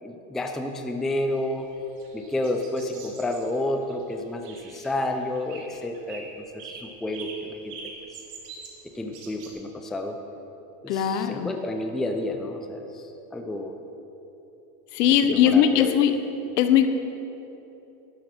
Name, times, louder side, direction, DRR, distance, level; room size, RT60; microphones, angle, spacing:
voice 1, 0.0-1.7 2.1-6.3 6.5-7.8 8.1-8.2 8.8-10.2 10.8-13.0 13.3-13.7 15.3-16.0, left 1 dB, ahead, 4 dB, 0.4 m, -30 dB
sound 1, 1.2-9.5, right 5 dB, 85° right, 2.7 m, -44 dB
voice 2, 10.9-11.6 14.9-16.1 16.6-16.9, left 9 dB, 80° left, 9 dB, 1.2 m, -20 dB
12.0 x 11.5 x 4.4 m, 2.9 s
supercardioid pair, 125°, 47 cm